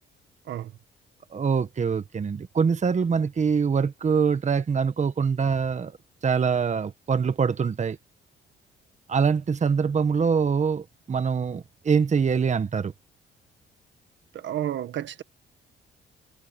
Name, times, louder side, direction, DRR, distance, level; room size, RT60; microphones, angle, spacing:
voice 1, 1.3-5.9 6.2-8.0 9.1-12.9, right 6 dB, 35° right, 1.3 m, -24 dB
voice 2, 14.3-15.2, right 11 dB, 70° right, 1.5 m, -31 dB
cardioid pair, 90°, 20 cm